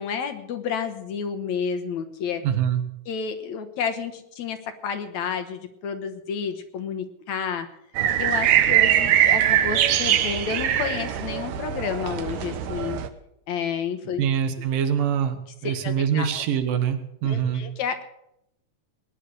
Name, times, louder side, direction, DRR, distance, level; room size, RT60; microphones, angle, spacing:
voice 1, 0.0-2.4 3.1-7.7 8.2-13.0 13.5-14.2 15.6-16.4 17.2-18.0, left 6 dB, 65° left, 8 dB, 2.2 m, -30 dB
voice 2, 2.4-2.8 14.2-17.6, right 8 dB, 90° right, 8 dB, 3.0 m, -24 dB
sound 1, 8.0-13.1, right 11 dB, 70° right, 2.2 m, -22 dB
19.5 x 10.0 x 6.6 m, 0.79 s
omnidirectional pair, 3.8 m